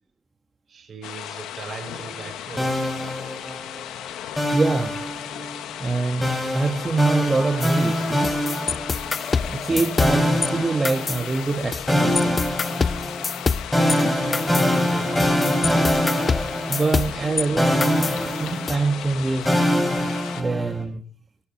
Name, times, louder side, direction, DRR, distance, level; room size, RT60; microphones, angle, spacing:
voice 1, 0.7-2.9 14.5-15.3 17.1-17.4, right 5 dB, 50° right, 6.2 m, -39 dB
sound 1, 1.0-20.4, left 10 dB, 85° left, 1.5 m, -36 dB
sound 2, 2.6-3.8 4.4-5.6 6.2-9.3 10.0-11.5 11.9-17.3 17.6-20.8, left 1 dB, 10° left, 7.6 m, -24 dB
voice 2, 4.5-4.9 5.8-8.3 9.4-12.3 16.7-19.6 20.4-21.0, right 3 dB, 25° right, 2.2 m, -24 dB
sound 3, 7.6-10.5 10.8-11.9 12.2-17.5 17.8-18.8, left 5 dB, 35° left, 0.8 m, -27 dB
29.5 x 13.0 x 3.4 m
cardioid pair, 90°, 0 cm